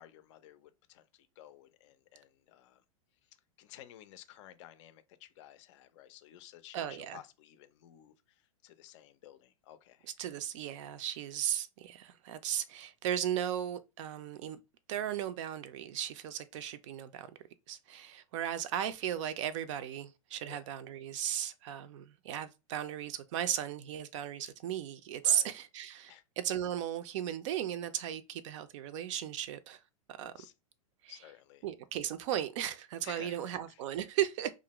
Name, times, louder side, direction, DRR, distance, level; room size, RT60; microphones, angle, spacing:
voice 1, 0.0-2.8 3.6-10.1 20.5-20.7 25.2-25.5 26.1-26.2 30.4-30.5 31.1-31.6 33.0-33.4 33.7-33.8, left 12 dB, 55° left, 0.4 m, -54 dB
voice 2, 6.7-7.2 10.2-14.6 14.9-17.3 17.7-29.8 30.1-30.3 31.0-31.1 31.6-34.5, right 10 dB, 55° right, 0.4 m, -36 dB
2.4 x 2.0 x 2.9 m
hypercardioid pair, 105°, 19 cm